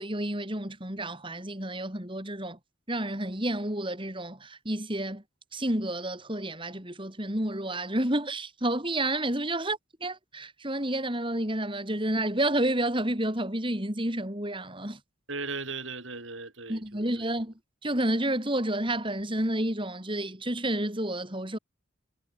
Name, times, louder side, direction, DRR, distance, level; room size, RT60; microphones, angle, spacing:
voice 1, 0.0-2.6 2.9-5.2 5.5-15.0 16.7-17.5 17.8-21.6, right 1 dB, 25° right, 4.6 m, -30 dB
voice 2, 15.3-17.3, right 4 dB, 75° right, 6.7 m, -37 dB
head